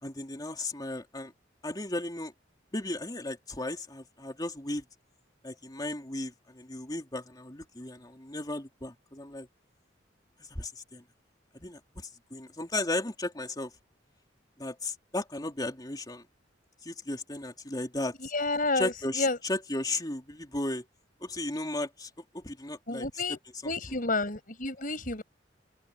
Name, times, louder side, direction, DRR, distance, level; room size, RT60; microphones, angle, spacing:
voice 1, 0.0-1.3 1.6-2.3 2.7-4.8 5.4-9.5 10.5-11.0 11.5-13.7 14.6-16.2 16.8-18.1 18.7-20.8 21.2-23.1, left 2 dB, 20° left, 3.1 m, -35 dB
voice 2, 18.2-19.4 22.9-23.4 23.6-25.2, left 3 dB, 50° left, 5.3 m, -30 dB
open air
head